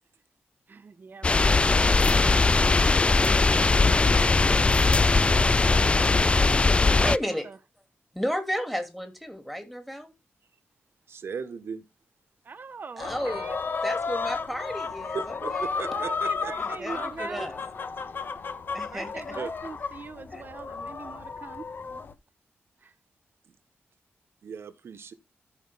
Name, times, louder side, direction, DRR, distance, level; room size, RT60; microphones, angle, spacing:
voice 1, 0.7-2.5 6.8-7.6 12.4-13.6 15.9-17.5 18.8-21.6 22.8-22.9, right 5 dB, 50° right, 1.1 m, -42 dB
sound 1, 1.2-7.2, left 3 dB, 25° left, 0.4 m, -20 dB
voice 2, 7.0-7.5 8.1-10.1 13.0-13.5 13.8-15.8 16.8-17.6 18.7-19.1 20.3-20.4, equal, ahead, 2.7 m, -32 dB
voice 3, 11.1-11.9 15.1-16.5 19.4-19.5 23.5-23.6 24.4-25.1, right 6 dB, 70° right, 1.3 m, -37 dB
sound 2, 13.0-22.1, left 5 dB, 55° left, 1.3 m, -33 dB
14.0 x 5.2 x 3.6 m
wide cardioid pair, 95°, 4 cm